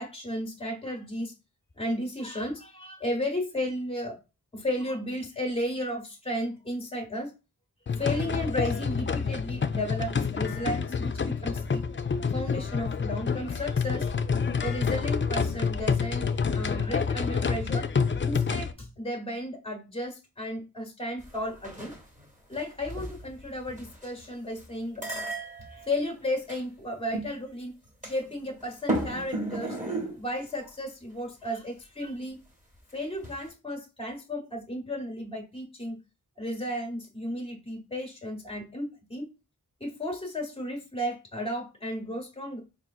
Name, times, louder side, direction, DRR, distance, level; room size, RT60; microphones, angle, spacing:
voice 1, 0.0-1.3 1.8-4.2 4.5-7.3 8.0-11.8 12.3-14.1 14.6-17.9 18.2-21.9 22.5-25.0 25.7-27.7 28.0-29.8 30.2-32.4 32.9-36.0 36.4-39.3 39.8-42.6, left 1 dB, 15° left, 1 dB, 1.0 m, -34 dB
sound 1, 7.9-18.7, left 5 dB, 35° left, 0.4 m, -28 dB
sound 2, 21.2-22.2 22.5-24.3 24.6-24.7 25.0-26.6 27.1-27.3 27.9-28.6 28.9-30.2 30.6-30.7 33.2-33.5, right 1 dB, 20° right, 1.4 m, -35 dB
4.2 x 3.3 x 2.3 m, 0.29 s
wide cardioid pair, 45°, 35 cm